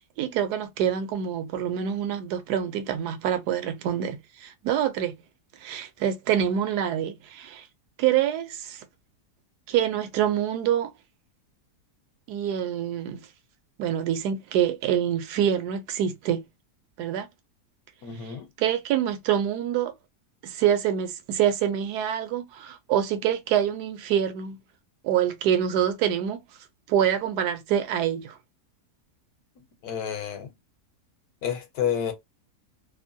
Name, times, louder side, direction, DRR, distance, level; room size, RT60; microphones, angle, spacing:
voice 1, 0.2-5.1 5.6-7.7 8.0-8.8 9.7-10.9 12.3-13.2 13.8-16.4 17.0-17.3 18.2-19.9 20.4-24.6 25.0-26.4 26.9-28.4, right 9 dB, 85° right, 1.1 m, -26 dB
voice 2, 18.0-18.5 29.8-30.5 31.4-32.1, left 8 dB, 75° left, 1.1 m, -29 dB
2.9 x 2.1 x 2.6 m
omnidirectional pair, 1.7 m